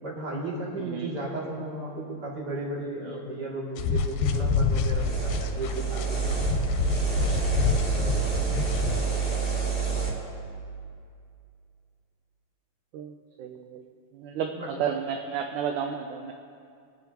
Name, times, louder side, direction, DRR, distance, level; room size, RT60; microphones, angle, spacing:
voice 1, 0.0-6.0 14.4-14.7, right 2 dB, 30° right, -4 dB, 2.6 m, -34 dB
voice 2, 0.8-1.1 3.1-3.2 12.9-13.8 14.1-16.3, right 7 dB, 75° right, 4 dB, 1.9 m, -32 dB
sound 1, 3.8-9.0, left 5 dB, 85° left, 2.5 m, -27 dB
sound 2, 4.3-10.1, right 6 dB, 5° right, 2.9 m, -28 dB
25.0 x 9.6 x 2.9 m, 2.3 s
omnidirectional pair, 4.1 m